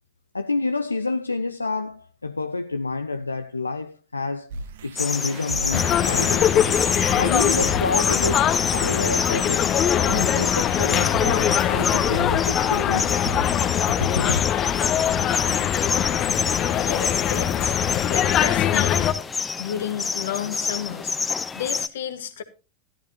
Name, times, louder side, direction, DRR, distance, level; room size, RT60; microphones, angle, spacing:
voice 1, 0.3-4.5 4.8-6.5 7.1-9.8 10.1-13.2 13.9-14.4, left 3 dB, 80° left, 0.6 m, -28 dB
sound 1, 4.5-13.9, right 4 dB, 55° right, 1.1 m, -37 dB
sound 2, 5.0-21.9, left 5 dB, 15° left, 0.8 m, -28 dB
sound 3, 5.7-19.1, left 10 dB, 30° left, 1.2 m, -22 dB
voice 2, 16.3-17.8 18.1-19.1 19.6-21.2 21.5-22.4, left 9 dB, 60° left, 1.5 m, -32 dB
14.0 x 12.5 x 2.8 m
figure-of-eight pair, 90°, 0 cm